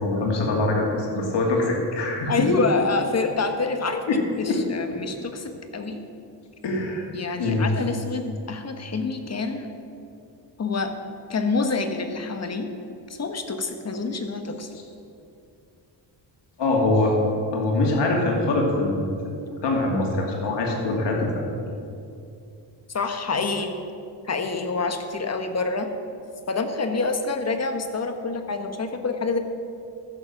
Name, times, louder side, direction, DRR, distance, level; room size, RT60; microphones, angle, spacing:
voice 1, 0.0-2.5 4.1-4.2 4.5-4.6 6.6-7.1 7.4-7.7 16.6-17.2 17.5-19.3 19.6-21.5, left 2 dB, 70° left, -1 dB, 2.6 m, -23 dB
voice 2, 2.3-6.0 7.1-9.7 10.6-10.9 11.3-12.7 13.1-14.7 22.9-23.7 24.2-25.9 26.5-29.4, left 3 dB, 35° left, 6 dB, 1.2 m, -27 dB
14.5 x 7.0 x 5.9 m, 2.6 s
cardioid pair, 100°, 44 cm